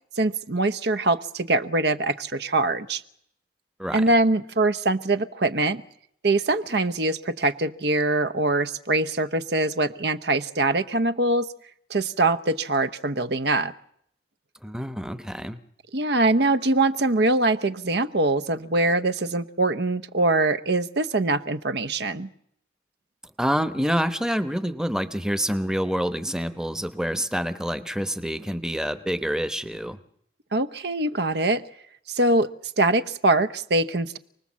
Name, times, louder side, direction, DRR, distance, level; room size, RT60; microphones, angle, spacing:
voice 1, 0.2-3.0 3.9-5.8 6.2-11.5 11.9-13.7 15.9-22.3 30.5-31.6 32.1-32.5 32.8-34.2, right 2 dB, 65° right, 12 dB, 0.9 m, -23 dB
voice 2, 14.6-15.6 23.4-30.0, equal, 5° right, 9 dB, 0.9 m, -27 dB
29.0 x 19.5 x 7.4 m, 0.71 s
head